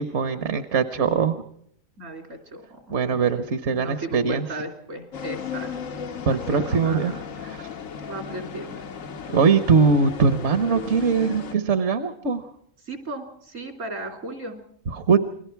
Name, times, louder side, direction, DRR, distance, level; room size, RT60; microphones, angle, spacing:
voice 1, 0.0-1.4 2.9-4.5 6.3-7.1 7.4-7.7 9.3-12.5 14.9-15.2, right 5 dB, 65° right, 10 dB, 1.3 m, -21 dB
voice 2, 2.0-3.0 3.7-5.7 6.3-7.3 8.1-8.8 12.8-14.6, right 2 dB, 80° right, 4 dB, 3.6 m, -36 dB
sound 1, 5.1-11.5, left 7 dB, 85° left, 1.5 m, -35 dB
29.0 x 21.5 x 4.6 m, 0.67 s
omnidirectional pair, 1.3 m